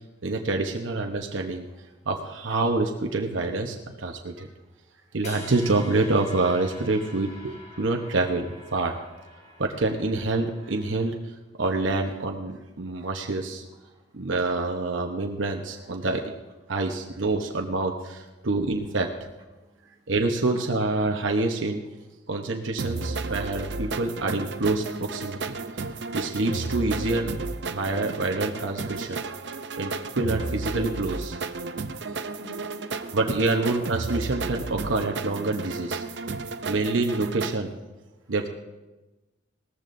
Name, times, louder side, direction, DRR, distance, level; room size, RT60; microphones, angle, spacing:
voice 1, 0.2-1.7 2.1-4.5 5.1-9.0 9.6-11.1 11.6-13.6 14.1-16.2 16.7-19.1 20.1-21.8 22.3-25.6 26.1-27.3 27.7-29.2 29.8-31.4 33.1-36.1 36.7-37.7 38.3-38.5, right 2 dB, 80° right, 3 dB, 1.0 m, -27 dB
sound 1, 5.2-11.4, left 2 dB, 35° left, 2.1 m, -46 dB
voice 2, 13.0-13.4 13.6-14.0 15.6-16.1 18.4-18.9 19.6-20.1 20.5-20.6 22.5-22.6 31.7-33.1 33.6-33.7 36.4-37.0, right 1 dB, 20° right, -5 dB, 3.7 m, -53 dB
sound 2, 22.8-37.5, right 3 dB, 60° right, 0.6 m, -33 dB
18.5 x 14.0 x 2.7 m, 1.1 s
head